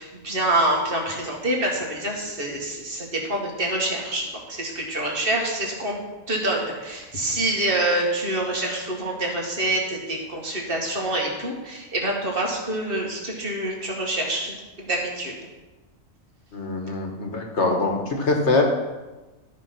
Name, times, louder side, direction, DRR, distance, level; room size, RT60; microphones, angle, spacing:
voice 1, 0.0-15.3, right 1 dB, 40° right, -1 dB, 2.2 m, -26 dB
voice 2, 16.5-18.6, left 3 dB, 55° left, 2 dB, 1.7 m, -23 dB
12.5 x 5.6 x 6.0 m, 1.2 s
omnidirectional pair, 1.4 m